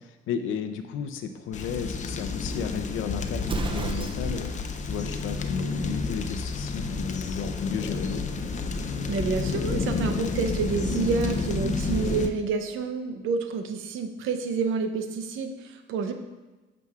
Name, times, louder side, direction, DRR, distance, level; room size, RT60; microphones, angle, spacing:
voice 1, 0.0-8.2, left 6 dB, 90° left, 8 dB, 0.6 m, -33 dB
sound 1, 1.5-12.3, left 4 dB, 40° left, 0.5 m, -30 dB
Explosion, 3.4-4.6, right 4 dB, 25° right, 0.4 m, -32 dB
voice 2, 9.1-16.1, right 5 dB, 90° right, 7 dB, 0.7 m, -28 dB
8.3 x 6.1 x 2.4 m, 1.2 s
cardioid pair, 90°, 20 cm